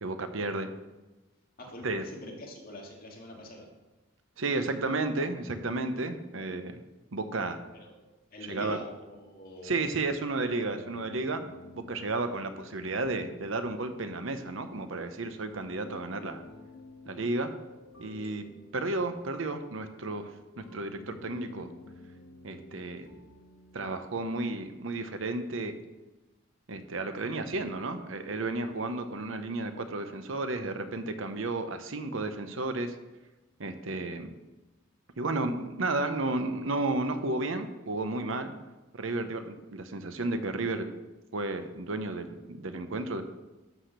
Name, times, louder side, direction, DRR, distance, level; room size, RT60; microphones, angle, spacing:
voice 1, 0.0-0.7 1.8-2.0 4.4-6.8 7.1-7.6 8.4-8.8 9.6-11.4 11.7-16.4 17.1-17.5 18.0-18.5 18.7-21.7 22.4-23.1 23.7-25.8 26.7-33.0 33.6-34.3 35.2-38.5 38.9-40.9 41.3-43.2, right 2 dB, 70° right, 8 dB, 0.9 m, -32 dB
voice 2, 1.6-3.7 7.8-9.9, left 1 dB, 45° left, -1 dB, 2.4 m, -45 dB
sound 1, 10.7-24.8, left 1 dB, 90° left, 2.0 m, -52 dB
12.0 x 5.0 x 6.6 m, 1.1 s
head